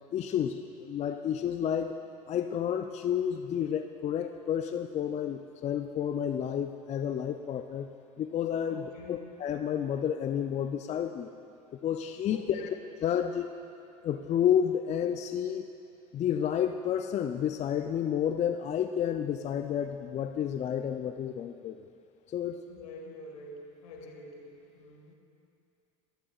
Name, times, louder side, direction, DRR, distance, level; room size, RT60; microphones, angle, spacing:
voice 1, 0.1-2.0 2.3-7.9 8.2-11.3 11.8-12.7 13.0-13.5 14.0-15.6 16.1-21.8 22.3-22.6, left 9 dB, 35° left, 8 dB, 0.4 m, -30 dB
voice 2, 8.7-9.3 12.3-12.7 22.7-23.6 23.8-25.1, left 3 dB, 85° left, 1 dB, 1.6 m, -46 dB
14.0 x 12.0 x 2.4 m, 2.6 s
hypercardioid pair, 75°, 19 cm